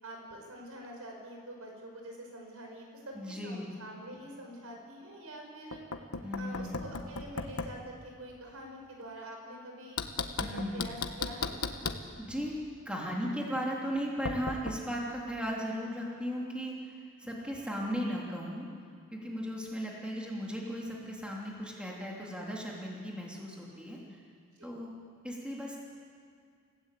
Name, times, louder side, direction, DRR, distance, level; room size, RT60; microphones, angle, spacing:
voice 1, 0.0-5.8 6.4-10.0 10.4-11.5 24.6-24.7, right 1 dB, 70° right, 1 dB, 5.5 m, -46 dB
voice 2, 3.1-3.7 6.2-6.8 10.4-10.9 12.2-18.7 19.1-24.0 24.6-24.9 25.2-25.8, equal, 5° right, -3 dB, 3.2 m, -36 dB
Knock, 5.7-7.8 10.0-12.1 14.3-14.8, left 4 dB, 70° left, 1.3 m, -36 dB
28.5 x 17.0 x 8.5 m, 2.2 s
head